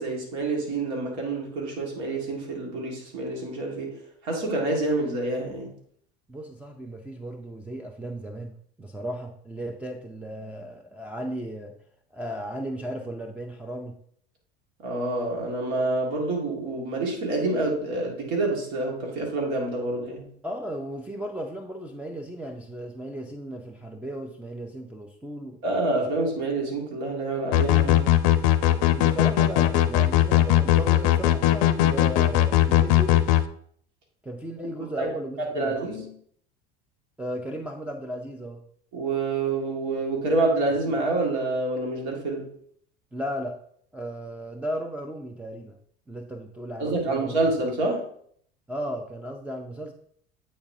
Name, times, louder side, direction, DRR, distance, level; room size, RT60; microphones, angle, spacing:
voice 1, 0.0-4.0 4.2-5.7 14.8-20.3 25.6-28.1 34.6-34.7 35.0-35.1 35.4-36.1 38.9-42.5 46.8-48.1, right 2 dB, 60° right, 0 dB, 1.9 m, -27 dB
voice 2, 6.3-11.7 12.1-14.0 20.4-25.6 28.9-33.2 34.2-35.8 37.2-38.6 43.1-43.6 43.9-45.8 46.1-47.4 48.7-49.9, equal, 5° right, -1 dB, 0.5 m, -35 dB
sound 1, 27.5-33.4, left 13 dB, 65° left, 0.5 m, -19 dB
8.6 x 4.1 x 2.7 m, 0.63 s
hypercardioid pair, 70°, 31 cm